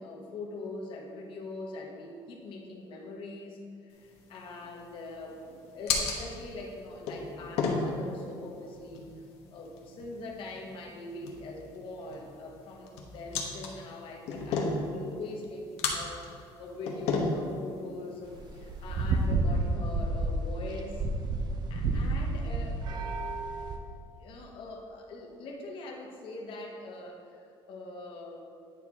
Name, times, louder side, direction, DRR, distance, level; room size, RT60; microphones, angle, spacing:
voice 1, 0.0-9.2 9.5-12.9 13.1-16.3 16.6-21.1 21.7-22.8 24.2-28.4, left 2 dB, 60° left, 0 dB, 1.3 m, -42 dB
sound 1, 3.9-19.3, left 4 dB, 85° left, 1.1 m, -36 dB
sound 2, 18.3-23.8, right 2 dB, 45° right, 0.7 m, -30 dB
9.6 x 4.6 x 3.6 m, 2.5 s
cardioid pair, 125°, 10 cm